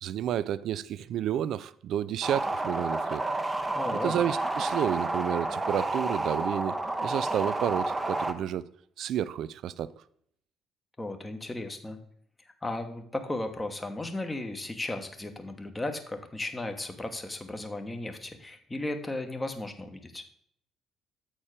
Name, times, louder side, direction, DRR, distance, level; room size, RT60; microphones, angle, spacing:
voice 1, 0.0-3.2 4.0-8.6 9.0-9.9, right 10 dB, 60° right, 0.3 m, -31 dB
sound 1, 2.2-8.3, right 2 dB, 20° right, 0.7 m, -30 dB
voice 2, 3.7-4.1 11.0-12.0 12.4-20.2, left 2 dB, 20° left, 1.2 m, -35 dB
8.3 x 4.4 x 4.9 m
figure-of-eight pair, 50°, 0 cm